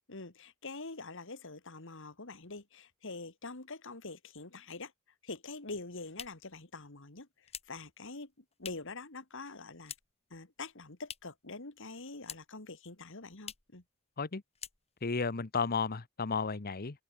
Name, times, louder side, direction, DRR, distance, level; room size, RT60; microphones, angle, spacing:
voice 1, 0.1-4.9 5.2-9.9 10.3-13.8, left 3 dB, 60° left, 2.4 m, -45 dB
sound 1, 5.6-9.1 9.3-10.3 10.6-11.5 11.8-12.7 13.0-13.1 13.4-13.8 14.1-14.3 14.5-15.2, left 8 dB, 30° left, 2.4 m, -48 dB
voice 2, 15.0-17.0, left 4 dB, 45° left, 0.9 m, -33 dB
open air
head